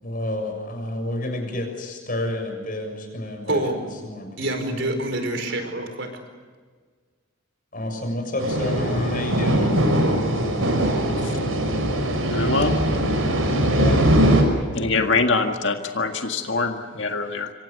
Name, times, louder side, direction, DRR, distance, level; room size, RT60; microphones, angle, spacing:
voice 1, 0.0-5.0 7.7-9.8 13.7-14.0, left 1 dB, 40° left, 4 dB, 6.8 m, -29 dB
voice 2, 3.5-3.8 4.4-6.1, right 1 dB, 60° right, 6 dB, 4.9 m, -26 dB
sound 1, 8.4-14.4, right 1 dB, 85° right, 6.0 m, -21 dB
voice 3, 12.3-12.8 13.2-13.5 14.7-17.5, left 3 dB, 60° left, 4 dB, 1.9 m, -24 dB
26.5 x 25.0 x 6.7 m, 1.5 s
head